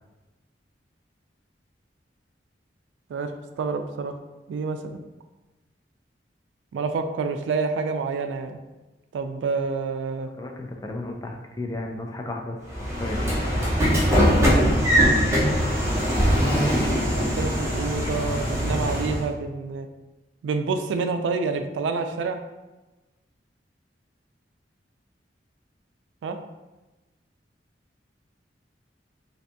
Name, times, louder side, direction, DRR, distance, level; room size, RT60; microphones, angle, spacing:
voice 1, 3.1-4.2 4.5-4.8 6.7-8.6 9.1-10.3 17.1-19.9 20.4-22.4 26.2-26.4, right 4 dB, 80° right, 7 dB, 0.3 m, -28 dB
voice 2, 10.3-13.4, left 2 dB, 20° left, 2 dB, 0.3 m, -34 dB
Train / Sliding door, 12.7-19.3, equal, 15° right, 0.7 m, -22 dB
3.2 x 2.6 x 2.6 m, 1.1 s
head